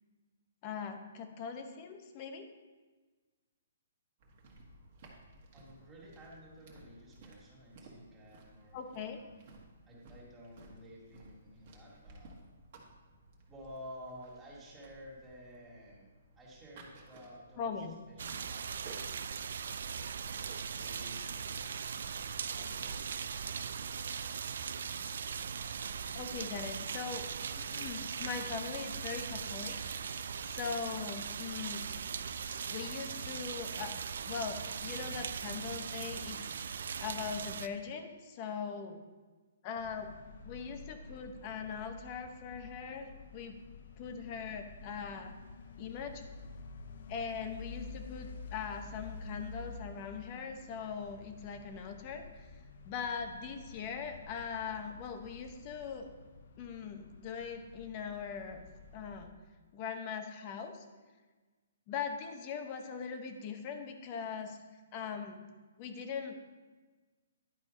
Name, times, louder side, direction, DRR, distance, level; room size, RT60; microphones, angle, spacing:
voice 1, 0.6-2.5 8.7-9.2 17.6-17.9 26.1-27.2 27.5-31.9 32.7-34.0 34.2-36.5 37.0-39.0 39.6-40.1 40.4-43.6 44.0-45.3 45.8-46.1 47.1-52.5 52.8-56.1 56.6-58.6 58.9-59.3 59.7-60.8 61.9-64.6 64.9-65.4 65.8-66.5, left 6 dB, 25° left, 6 dB, 0.8 m, -41 dB
sound 1, 4.2-21.5, right 2 dB, 35° right, 1.5 m, -57 dB
voice 2, 5.5-9.5 9.9-12.4 13.5-16.1 16.4-19.0 19.8-20.4 20.7-21.9 22.5-24.0, equal, 10° right, -6 dB, 2.2 m, -53 dB
sound 2, 18.2-37.7, right 6 dB, 65° right, 0.4 m, -39 dB
sound 3, 39.8-59.3, left 3 dB, 55° left, 0.7 m, -50 dB
11.0 x 4.7 x 5.3 m, 1.3 s
hypercardioid pair, 165°, 0 cm